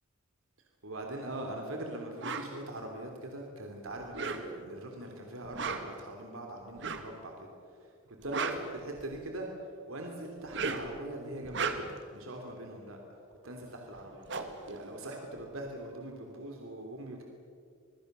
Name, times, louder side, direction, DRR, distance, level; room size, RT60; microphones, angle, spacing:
voice 1, 0.8-7.3 7.7-9.5 9.9-13.2 13.4-17.2, right 1 dB, 85° right, 2 dB, 3.1 m, -42 dB
sound 1, 2.2-2.5 4.0-4.7 5.4-6.0 6.8-7.1 8.1-9.3 10.3-11.0 11.4-12.1 13.6-13.7 14.0-15.6, right 4 dB, 60° right, 2.0 m, -36 dB
27.0 x 22.0 x 6.8 m, 2.4 s
head